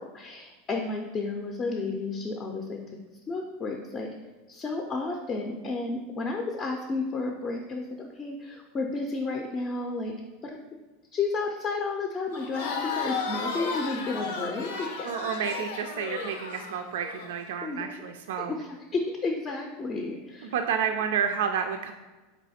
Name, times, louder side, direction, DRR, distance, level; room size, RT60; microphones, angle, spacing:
voice 1, 0.0-2.8 3.3-4.1 4.5-10.1 10.4-10.6 11.1-15.1 17.6-17.9 18.4-20.5, left 3 dB, 25° left, 2 dB, 0.5 m, -32 dB
Crowd, 12.3-17.3, left 5 dB, 80° left, 0.6 m, -34 dB
voice 2, 15.0-18.5 20.4-21.9, right 7 dB, 80° right, 5 dB, 0.3 m, -30 dB
4.1 x 3.1 x 4.2 m, 1.2 s
supercardioid pair, 130°, 0 cm